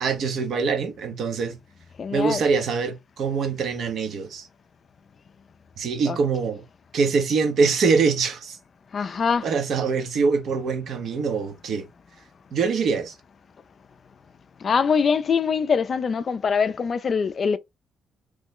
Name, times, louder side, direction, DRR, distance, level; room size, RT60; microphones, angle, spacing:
voice 1, 0.0-1.6 2.1-4.5 5.8-6.6 6.9-8.6 9.4-11.9 12.5-13.1, right 5 dB, 65° right, 0.7 m, -24 dB
voice 2, 2.0-2.4 6.1-6.2 8.9-9.5 14.6-17.6, left 6 dB, 45° left, 0.3 m, -23 dB
3.1 x 2.0 x 3.7 m
cardioid pair, 90°, 0 cm